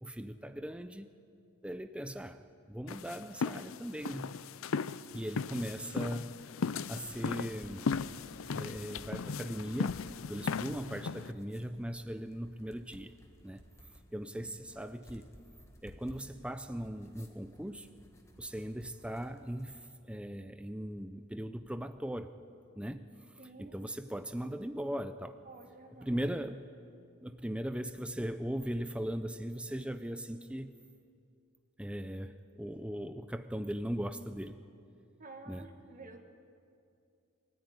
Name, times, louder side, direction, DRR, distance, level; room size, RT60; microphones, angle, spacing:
voice 1, 0.0-1.1 1.6-2.4 2.7-4.4 5.1-6.5 6.9-7.9 8.5-13.1 13.4-13.6 14.1-15.3 15.8-17.9 18.4-22.3 22.8-23.1 23.6-25.4 26.0-26.7 27.2-30.8 31.8-34.6 35.5-35.7, equal, 5° right, 10 dB, 0.6 m, -39 dB
sound 1, 2.9-11.3, left 5 dB, 65° left, 0.5 m, -37 dB
sound 2, 6.5-20.0, equal, 15° left, 1.8 m, -57 dB
voice 2, 23.4-23.9 25.4-26.2 35.2-36.2, right 3 dB, 40° right, 3 dB, 1.8 m, -51 dB
23.5 x 14.5 x 9.7 m, 2.5 s
head